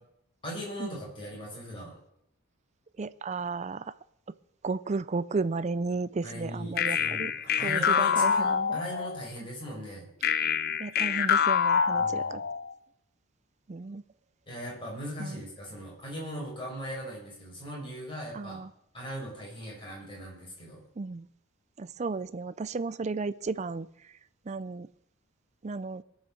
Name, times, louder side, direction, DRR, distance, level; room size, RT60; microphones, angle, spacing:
voice 1, 0.4-1.9 6.2-10.1 11.9-12.4 14.5-18.6 18.9-20.8, equal, 25° left, -4 dB, 5.8 m, -39 dB
voice 2, 3.0-3.9 4.6-7.3 7.6-8.8 10.8-12.4 13.7-14.0 15.2-15.4 18.3-18.7 21.0-21.3 21.8-24.2 24.5-24.9 25.6-26.0, right 3 dB, 30° right, 16 dB, 0.4 m, -34 dB
sound 1, 6.8-9.3 10.2-12.7, left 7 dB, 45° left, 0.5 m, -26 dB
18.0 x 6.5 x 7.0 m, 0.77 s
head